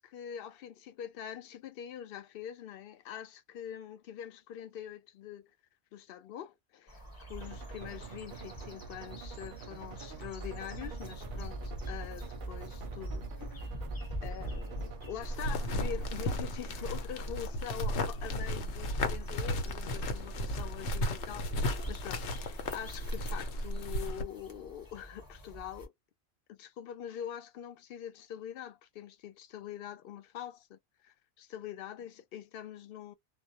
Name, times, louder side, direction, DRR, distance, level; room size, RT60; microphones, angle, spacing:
voice 1, 0.0-5.5 5.9-7.0 7.3-13.6 14.2-25.9 26.5-33.1, left 10 dB, 65° left, 0.7 m, -44 dB
sound 1, 6.9-25.9, right 1 dB, 20° left, 0.9 m, -44 dB
sound 2, 7.4-16.4, right 6 dB, 60° right, 0.6 m, -48 dB
sound 3, 15.2-24.2, left 1 dB, 85° left, 1.0 m, -35 dB
2.2 x 2.0 x 2.7 m
omnidirectional pair, 1.1 m